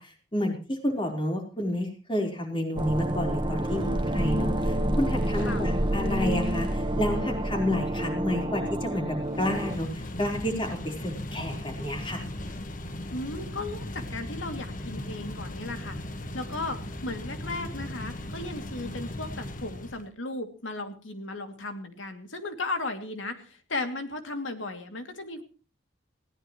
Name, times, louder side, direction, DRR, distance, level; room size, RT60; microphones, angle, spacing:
voice 1, 0.0-3.8 4.1-12.3, left 1 dB, 25° left, 2 dB, 4.4 m, -30 dB
sound 1, 2.8-9.8, right 1 dB, 25° right, 1.3 m, -28 dB
voice 2, 3.7-4.0 5.4-5.6 13.1-16.0 16.3-25.4, left 2 dB, 80° left, 6 dB, 2.7 m, -36 dB
sound 2, 9.2-20.1, left 1 dB, 45° left, 1.5 m, -37 dB
20.0 x 17.5 x 3.2 m, 0.37 s
head